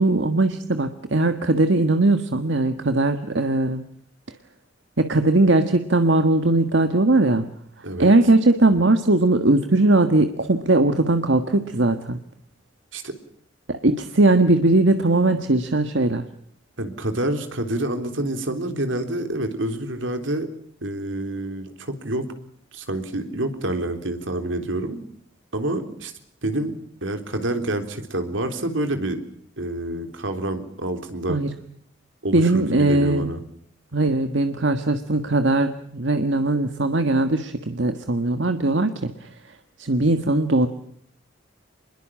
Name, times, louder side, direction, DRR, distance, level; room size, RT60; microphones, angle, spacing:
voice 1, 0.0-3.8 5.0-7.5 8.0-12.2 13.7-16.2 31.3-31.5 32.3-33.3 33.9-39.3 39.8-40.7, right 2 dB, 70° right, 8 dB, 1.5 m, -19 dB
voice 2, 16.8-20.5 20.8-22.3 22.7-25.0 25.5-26.1 26.4-26.7 27.0-29.2 29.6-31.4 32.2-33.4, right 1 dB, 85° right, 7 dB, 3.6 m, -27 dB
27.0 x 21.5 x 7.5 m, 0.66 s
head